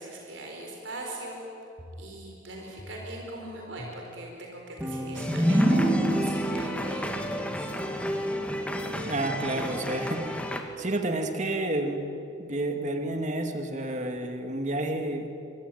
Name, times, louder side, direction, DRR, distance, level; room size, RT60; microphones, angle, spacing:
voice 1, 0.0-1.4 2.0-8.0, right 2 dB, 85° right, 0 dB, 4.7 m, -41 dB
sound 1, 1.8-2.5 2.8-3.4 3.8-4.3 4.8-4.9 5.8-5.9 6.8-6.9 7.8-7.9 8.8-8.9, equal, 25° left, 6.3 m, -46 dB
sound 2, 4.8-8.5, right 1 dB, 10° right, 2.8 m, -27 dB
sound 3, 5.1-10.6, equal, 5° left, 2.0 m, -33 dB
voice 2, 9.1-10.4 10.8-12.0 12.4-15.3, right 1 dB, 40° right, 5 dB, 2.3 m, -30 dB
26.0 x 23.0 x 9.3 m, 2.8 s
head